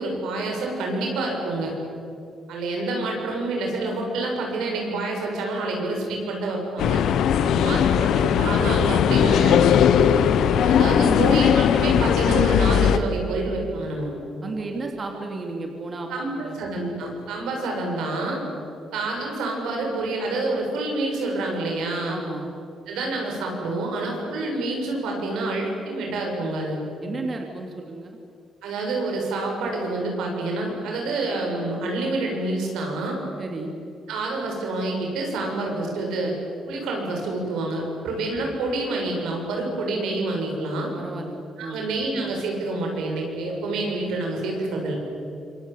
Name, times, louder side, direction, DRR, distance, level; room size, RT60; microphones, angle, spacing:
voice 1, 0.0-1.7 2.5-7.0 7.6-9.7 10.6-14.1 16.1-18.4 18.9-22.2 22.9-26.8 28.6-33.2 34.1-36.4 36.7-40.9 41.6-45.0, right 2 dB, 85° right, 1 dB, 7.7 m, -27 dB
sound 1, 6.8-13.0, left 8 dB, 75° left, 1.2 m, -19 dB
voice 2, 7.4-7.8 11.0-11.3 14.4-16.6 22.1-22.5 27.0-28.2 33.4-33.7 40.9-41.8, right 3 dB, 40° right, 2 dB, 3.2 m, -33 dB
26.5 x 23.5 x 9.4 m, 2.5 s
cardioid pair, 90°, 0 cm